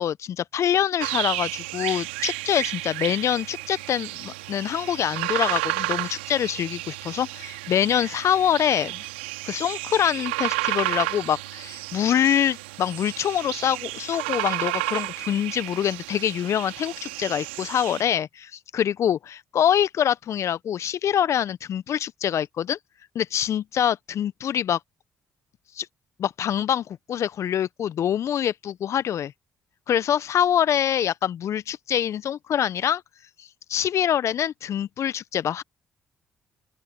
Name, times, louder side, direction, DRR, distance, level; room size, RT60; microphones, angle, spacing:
voice 1, 0.0-9.0 9.4-22.8 23.1-24.8 25.7-25.9 26.2-29.3 29.9-33.0 33.4-35.6, left 9 dB, 60° left, 1.0 m, -25 dB
sound 1, 1.0-18.0, right 21 dB, 85° right, 3.8 m, -32 dB
open air
hypercardioid pair, 45°, 6 cm